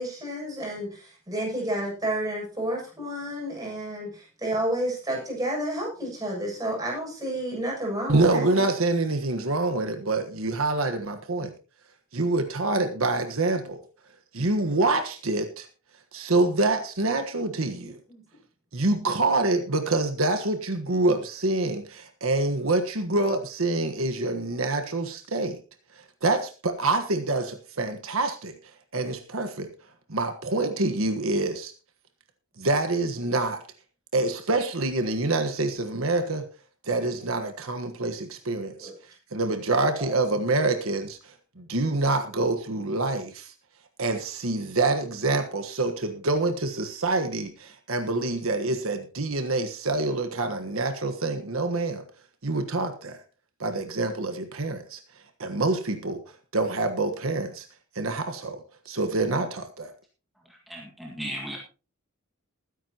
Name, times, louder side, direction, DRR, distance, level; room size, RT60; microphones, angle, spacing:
voice 1, 0.0-8.7 17.8-18.2 38.8-39.0 40.0-40.2, right 1 dB, 15° right, -3 dB, 7.6 m, -31 dB
voice 2, 8.1-11.5 12.1-13.8 14.3-15.7 16.1-18.0 18.7-25.6 26.0-28.5 28.9-29.7 30.1-31.7 32.6-33.6 34.1-36.4 36.8-38.9 39.3-43.5 44.0-52.0 52.4-53.2 53.6-55.0 55.4-56.2 56.5-57.7 57.9-59.9, right 2 dB, 70° right, 7 dB, 1.4 m, -26 dB
voice 3, 60.5-61.6, equal, ahead, -2 dB, 1.9 m, -36 dB
21.0 x 10.0 x 3.0 m, 0.34 s
head